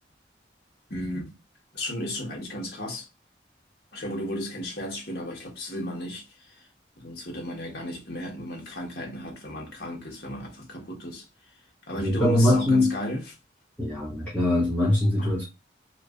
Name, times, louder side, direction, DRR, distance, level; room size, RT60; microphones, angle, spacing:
voice 1, 0.9-1.3 1.7-3.1 3.9-6.6 7.0-11.3 11.9-13.2, left 1 dB, 65° left, 1.3 m, -34 dB
voice 2, 11.9-12.9 13.8-15.4, left 1 dB, 10° left, 1.2 m, -22 dB
2.8 x 2.8 x 2.4 m
head